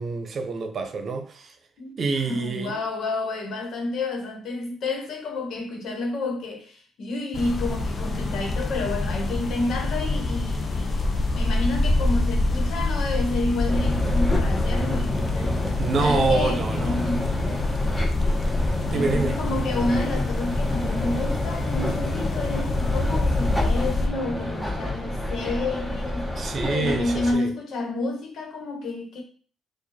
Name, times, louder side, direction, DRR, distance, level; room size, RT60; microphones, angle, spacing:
voice 1, 0.0-1.5 2.0-2.7 15.8-17.0 18.9-19.4 26.4-27.5, right 4 dB, 50° right, 0.9 m, -26 dB
voice 2, 2.2-11.1 11.3-15.6 16.0-17.3 18.9-26.3 26.7-29.2, left 2 dB, 70° left, 1.4 m, -29 dB
sound 1, 7.3-24.1, left 2 dB, 40° left, 0.8 m, -26 dB
sound 2, 13.7-27.3, left 1 dB, 5° left, 1.3 m, -29 dB
4.7 x 2.6 x 4.3 m
cardioid pair, 90°, 0 cm